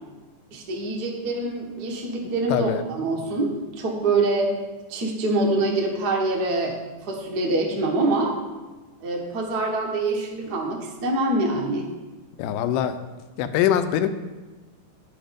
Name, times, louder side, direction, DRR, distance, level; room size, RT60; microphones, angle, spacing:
voice 1, 0.5-4.5 4.9-6.8 7.0-8.4 9.0-11.9, right 2 dB, 55° right, 0 dB, 1.1 m, -25 dB
voice 2, 2.5-2.8 12.4-13.0 13.4-14.1, left 10 dB, 85° left, 10 dB, 2.2 m, -22 dB
10.0 x 6.0 x 5.1 m, 1.2 s
omnidirectional pair, 3.7 m